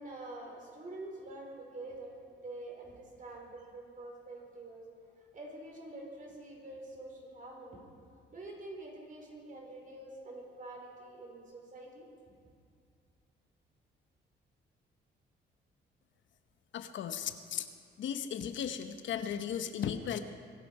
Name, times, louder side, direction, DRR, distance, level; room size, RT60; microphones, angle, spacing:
voice 1, 0.0-2.1 2.4-4.8 5.2-7.8 8.3-12.0, right 2 dB, 40° right, -1 dB, 4.8 m, -46 dB
voice 2, 16.7-17.7 18.0-20.2, left 8 dB, 70° left, 8 dB, 1.0 m, -36 dB
23.0 x 12.0 x 4.8 m, 2.4 s
cardioid pair, 90°, 20 cm